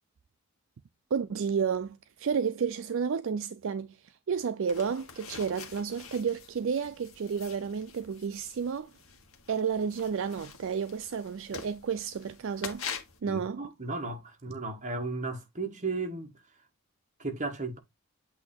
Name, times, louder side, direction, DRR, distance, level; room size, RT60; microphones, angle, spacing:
voice 1, 1.1-8.9 9.5-12.8 13.2-13.6, right 6 dB, 60° right, 0.4 m, -31 dB
sound 1, 4.7-13.2, left 6 dB, 70° left, 1.4 m, -45 dB
voice 2, 13.2-16.3 17.2-17.8, right 3 dB, 35° right, 1.4 m, -35 dB
8.2 x 2.8 x 4.2 m
head